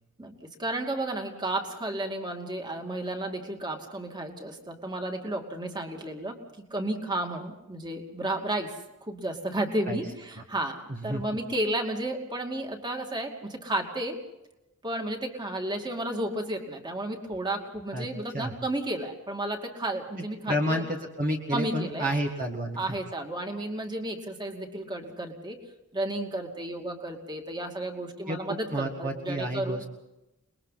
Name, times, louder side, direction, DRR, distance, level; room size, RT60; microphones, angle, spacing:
voice 1, 0.2-8.7 9.0-14.2 14.8-20.8 21.5-22.1 22.8-25.6 25.9-29.8, right 1 dB, 20° right, 3 dB, 2.5 m, -32 dB
voice 2, 10.9-11.2 17.9-18.1 18.3-18.5 20.5-22.9 28.3-29.9, equal, 40° right, 1 dB, 1.9 m, -30 dB
29.0 x 21.5 x 4.2 m, 0.96 s
head